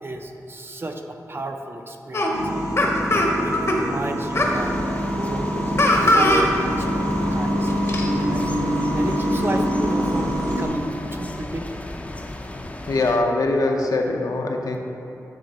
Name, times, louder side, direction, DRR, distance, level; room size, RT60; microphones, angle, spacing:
voice 1, 0.0-2.9 3.4-4.7 5.0-8.5 8.9-11.9, right 1 dB, 35° right, 4 dB, 0.5 m, -33 dB
sound 1, 2.1-2.3 2.8-3.8 4.3-4.6 5.8-6.4 6.8-6.9 7.7-8.1, left 1 dB, 45° left, 0.8 m, -19 dB
sound 2, 2.3-10.7, equal, 75° right, 1.2 m, -25 dB
sound 3, 4.3-13.2, left 1 dB, 20° left, 0.5 m, -35 dB
voice 2, 12.9-14.8, left 2 dB, 70° left, 2 dB, 0.6 m, -22 dB
9.3 x 3.3 x 4.1 m, 2.8 s
wide cardioid pair, 75°, 7 cm